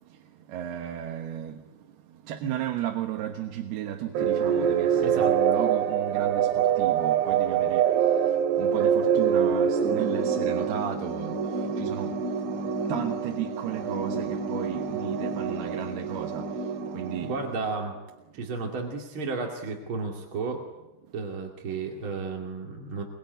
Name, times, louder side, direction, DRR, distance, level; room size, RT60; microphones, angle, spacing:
voice 1, 0.5-1.6 2.1-12.1 12.9-17.3, right 11 dB, 70° right, 3.1 m, -34 dB
sound 1, 4.2-17.9, right 7 dB, 85° right, 4.6 m, -26 dB
voice 2, 5.0-5.3 17.2-17.9 18.3-20.7 21.1-23.0, right 4 dB, 35° right, 2.3 m, -33 dB
25.0 x 23.0 x 9.2 m
omnidirectional pair, 5.2 m